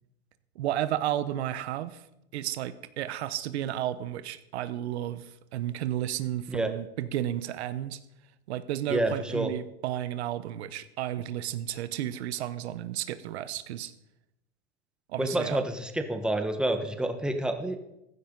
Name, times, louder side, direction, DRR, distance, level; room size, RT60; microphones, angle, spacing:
voice 1, 0.6-2.0 2.3-8.0 8.5-13.9 15.1-15.6, right 12 dB, 80° right, 14 dB, 0.9 m, -32 dB
voice 2, 8.9-9.5 15.2-17.8, right 1 dB, 5° right, 6 dB, 1.3 m, -28 dB
15.0 x 11.5 x 3.9 m, 0.86 s
supercardioid pair, 120°, 32 cm